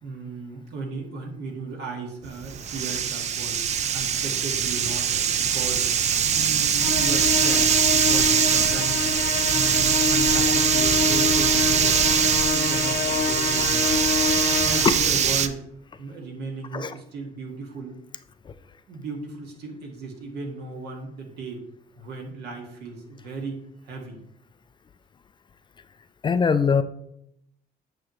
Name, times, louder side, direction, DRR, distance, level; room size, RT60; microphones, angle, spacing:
voice 1, 0.0-5.9 6.2-9.1 9.5-12.0 12.5-14.2 14.6-15.6 16.0-18.0 18.9-21.6 22.0-24.2, right 3 dB, 80° right, 1 dB, 1.9 m, -36 dB
sound 1, 2.2-15.5, right 8 dB, 40° right, 0.5 m, -22 dB
Musical instrument, 6.8-15.3, left 6 dB, 85° left, 0.9 m, -27 dB
voice 2, 14.4-14.9 16.7-16.9 18.5-18.6 26.2-26.8, left 6 dB, 30° left, 12 dB, 0.4 m, -22 dB
8.6 x 5.9 x 3.1 m, 0.76 s
cardioid pair, 125°, 17 cm